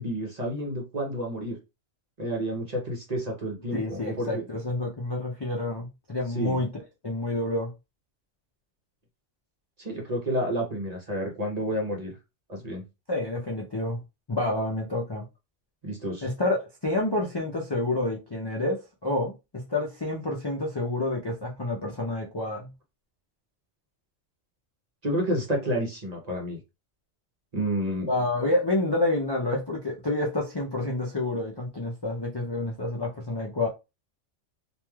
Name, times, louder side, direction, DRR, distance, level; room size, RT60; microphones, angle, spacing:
voice 1, 0.0-1.6 2.2-4.4 6.3-6.6 9.8-12.1 12.5-12.8 15.8-16.3 25.0-26.6 27.5-28.1, equal, 40° right, 0.8 m, -30 dB
voice 2, 3.7-6.7 7.0-7.7 13.1-14.0 14.3-15.3 16.2-22.7 28.1-33.7, left 2 dB, 35° left, 0.4 m, -28 dB
3.1 x 2.5 x 2.3 m
omnidirectional pair, 1.3 m